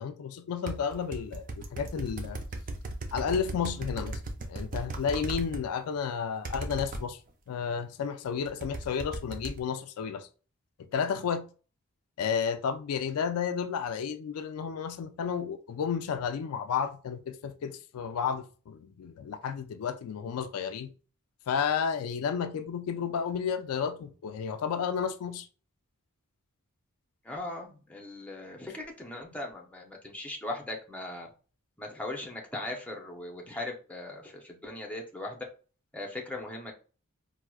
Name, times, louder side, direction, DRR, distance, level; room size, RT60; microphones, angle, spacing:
voice 1, 0.0-2.4 3.1-4.2 4.5-7.2 7.5-10.3 10.9-11.4 12.2-20.9 21.5-25.5, left 7 dB, 85° left, 0.4 m, -32 dB
sound 1, 0.7-5.6 6.4-7.0 8.5-9.6, right 2 dB, 40° right, 0.5 m, -36 dB
voice 2, 27.2-31.3 31.8-35.5 35.9-36.7, left 2 dB, 5° left, 0.6 m, -39 dB
4.5 x 2.1 x 2.2 m
head